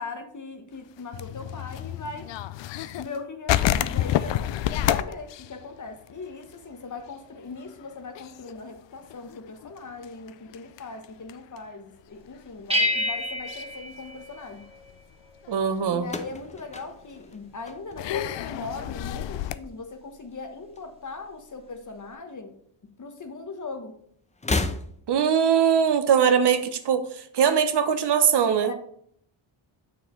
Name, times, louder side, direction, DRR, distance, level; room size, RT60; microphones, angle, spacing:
voice 1, 0.0-2.3 3.0-14.6 15.9-22.5 23.0-24.0 28.5-28.7, left 4 dB, 40° left, 6 dB, 1.2 m, -39 dB
sound 1, 1.0-3.2 3.5-6.7 7.0-7.1 7.5-7.8 8.1-11.6 12.3-12.4 13.5-13.7 14.2-14.9 15.4-15.5 16.9-17.0 18.0-19.5, left 12 dB, 65° left, 0.5 m, -29 dB
sound 2, 12.7-14.9, left 1 dB, 10° right, 1.3 m, -28 dB
voice 2, 15.5-16.1 25.1-28.7, right 7 dB, 55° right, 9 dB, 0.7 m, -21 dB
sound 3, 16.0-18.4 18.7-19.3 20.3-21.3 21.6-21.7 22.8-22.9 24.3-25.3, left 3 dB, 15° left, 0.6 m, -33 dB
6.9 x 6.0 x 3.1 m, 0.67 s
cardioid pair, 70°, 47 cm